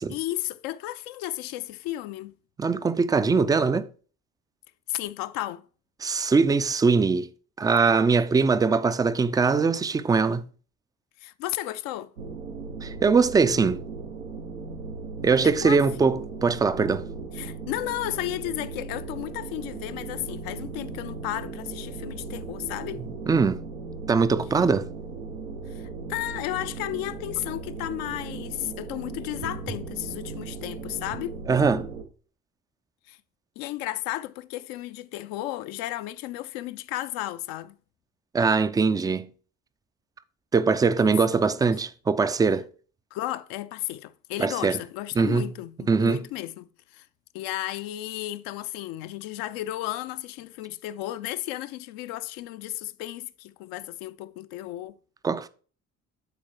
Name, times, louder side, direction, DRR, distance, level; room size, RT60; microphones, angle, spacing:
voice 1, 0.1-2.3 4.9-5.6 11.2-12.1 15.4-15.8 17.3-23.0 25.7-31.4 33.1-33.2 33.6-37.8 41.0-41.1 43.1-47.1 47.3-55.0, left 15 dB, 60° left, 0.5 m, -34 dB
voice 2, 2.6-3.9 6.0-7.3 7.6-10.4 12.8-13.8 15.2-17.1 23.3-23.6 24.1-24.9 31.5-31.9 38.3-39.3 40.5-42.7 44.4-44.8 45.2-45.4 45.9-46.2 55.2-55.5, right 4 dB, 10° right, 0.3 m, -22 dB
sound 1, 12.2-32.0, right 4 dB, 85° right, 0.7 m, -37 dB
11.5 x 4.3 x 3.0 m
figure-of-eight pair, 45°, 41 cm